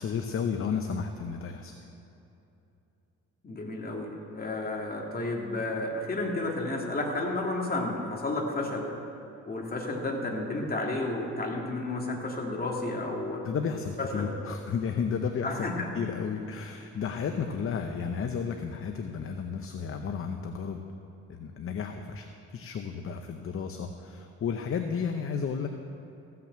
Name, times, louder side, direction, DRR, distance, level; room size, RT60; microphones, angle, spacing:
voice 1, 0.0-1.7 13.0-13.2 13.4-20.8 21.3-25.7, left 6 dB, 45° left, 6 dB, 0.7 m, -33 dB
voice 2, 3.4-8.9 9.5-13.4 14.0-14.3 15.4-15.9, left 2 dB, 30° left, 0 dB, 2.3 m, -32 dB
15.0 x 5.9 x 7.6 m, 2.8 s
cardioid pair, 90°, 30 cm